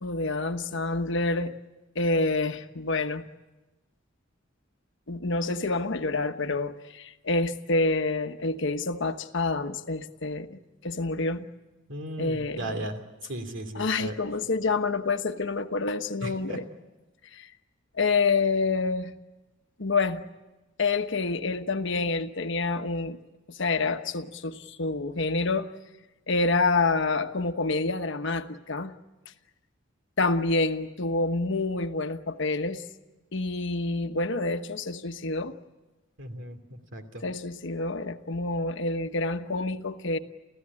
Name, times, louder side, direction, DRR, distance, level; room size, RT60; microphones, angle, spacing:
voice 1, 0.0-1.6 1.9-3.3 5.1-11.5 12.2-12.9 13.7-16.6 17.3-17.5 18.0-19.1 19.8-20.2 20.8-23.2 23.5-25.7 26.3-28.9 30.2-32.8 33.3-35.6 37.2-40.2, left 3 dB, 65° left, 8 dB, 1.2 m, -27 dB
voice 2, 11.9-13.0 13.3-14.1 16.2-16.6 36.2-37.2, right 1 dB, 65° right, 7 dB, 2.8 m, -36 dB
29.5 x 15.5 x 9.8 m, 1.1 s
head